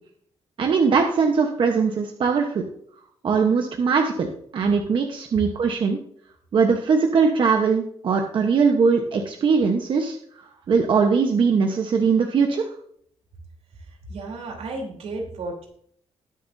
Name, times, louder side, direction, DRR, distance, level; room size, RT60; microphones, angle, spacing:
voice 1, 0.6-2.6 3.2-4.3 4.5-6.0 6.5-10.2 10.7-12.6, right 5 dB, 50° right, 3 dB, 1.1 m, -20 dB
voice 2, 13.7-15.7, right 2 dB, 80° right, 0 dB, 3.5 m, -34 dB
20.5 x 7.1 x 2.7 m, 0.65 s
wide cardioid pair, 175°, 11 cm